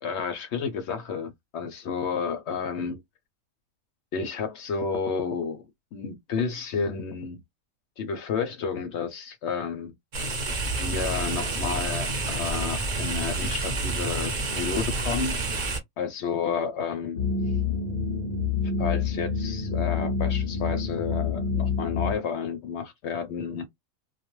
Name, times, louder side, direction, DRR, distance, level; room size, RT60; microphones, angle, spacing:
voice 1, 0.0-3.0 4.1-7.4 8.0-9.9 10.8-15.4 16.0-17.2 18.8-23.7, left 6 dB, 65° left, 0.7 m, -31 dB
sound 1, 10.1-15.8, right 3 dB, 45° right, 0.7 m, -29 dB
sound 2, 17.2-22.2, left 5 dB, 85° left, 0.4 m, -27 dB
2.3 x 2.2 x 2.9 m
omnidirectional pair, 1.5 m